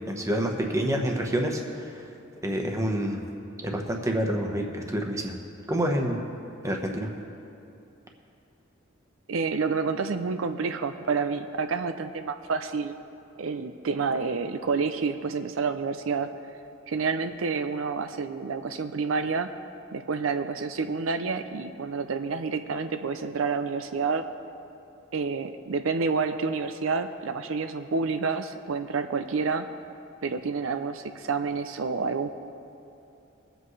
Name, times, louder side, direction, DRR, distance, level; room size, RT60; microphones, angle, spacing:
voice 1, 0.1-2.0 2.4-3.2 3.6-5.3 5.7-6.2 6.6-7.1, equal, 15° right, 2 dB, 1.1 m, -28 dB
voice 2, 9.3-12.9 13.4-16.3 16.9-19.5 19.9-24.3 25.1-29.7 30.2-32.3, right 4 dB, 80° right, 9 dB, 0.5 m, -29 dB
22.5 x 7.9 x 3.2 m, 2.7 s
head